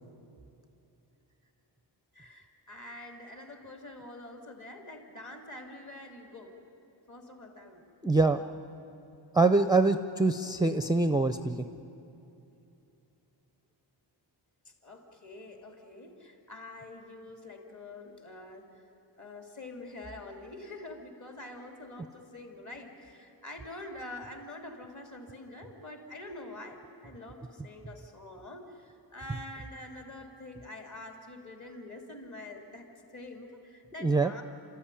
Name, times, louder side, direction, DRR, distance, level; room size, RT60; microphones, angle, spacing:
voice 1, 2.1-6.6 7.1-7.8 14.6-18.8 19.2-34.4, left 2 dB, 40° left, 3 dB, 3.0 m, -46 dB
voice 2, 8.0-8.4 9.3-11.5 34.0-34.3, right 3 dB, 10° right, 8 dB, 0.5 m, -24 dB
28.5 x 14.0 x 10.0 m, 2.8 s
wide cardioid pair, 150°, 44 cm